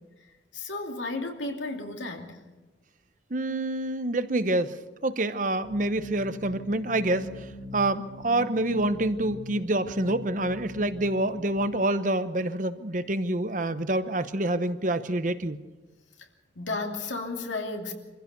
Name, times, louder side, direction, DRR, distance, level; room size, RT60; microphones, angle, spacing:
voice 1, 0.5-2.4 16.6-17.9, left 2 dB, 85° left, 3 dB, 2.6 m, -33 dB
voice 2, 3.3-15.6, right 1 dB, 45° right, 11 dB, 0.9 m, -27 dB
sound 1, 5.6-11.6, left 1 dB, 35° left, 2.1 m, -41 dB
25.0 x 15.5 x 6.9 m, 1.2 s
head